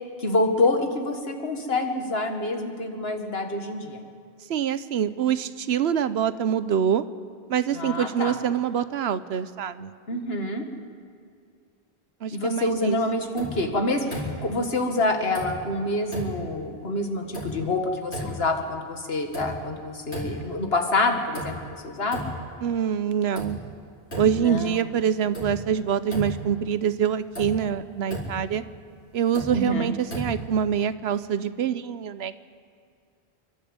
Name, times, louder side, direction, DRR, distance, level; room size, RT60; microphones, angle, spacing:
voice 1, 0.2-4.0 7.7-8.4 10.1-10.7 12.3-21.5 21.8-22.3 24.4-24.8 29.5-29.9, left 2 dB, 70° left, 4 dB, 2.1 m, -27 dB
voice 2, 4.5-7.0 7.5-9.9 12.2-13.0 22.6-23.6 24.2-28.6 29.1-32.4, right 8 dB, 75° right, 14 dB, 1.0 m, -25 dB
sound 1, 13.4-13.7 14.1-14.6 15.3-15.8 16.1-16.5 17.3-17.8 18.1-18.6 19.3-19.8 20.1-20.6 21.3-21.8 22.1-22.6 23.3-23.7 24.1-24.6 25.3-25.7 26.1-26.6 27.3-27.7 28.1-28.5 29.3-29.7 30.1-30.6, equal, 90° left, 4.9 m, -35 dB
28.0 x 12.0 x 8.1 m, 2.3 s
omnidirectional pair, 1.1 m